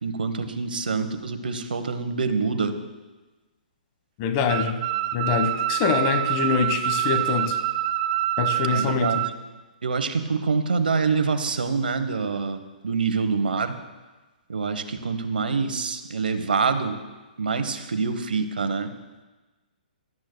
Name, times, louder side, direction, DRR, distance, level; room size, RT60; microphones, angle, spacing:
voice 1, 0.0-2.7 8.7-9.2 9.8-13.7 14.5-17.0 17.4-18.9, right 4 dB, 85° right, 9 dB, 1.0 m, -26 dB
voice 2, 4.2-4.8 5.1-7.6 8.4-9.2, left 6 dB, 35° left, 7 dB, 1.2 m, -24 dB
sound 1, 4.5-9.3, right 13 dB, 45° right, 0.5 m, -26 dB
17.0 x 12.0 x 2.2 m, 1.2 s
hypercardioid pair, 140°, 5 cm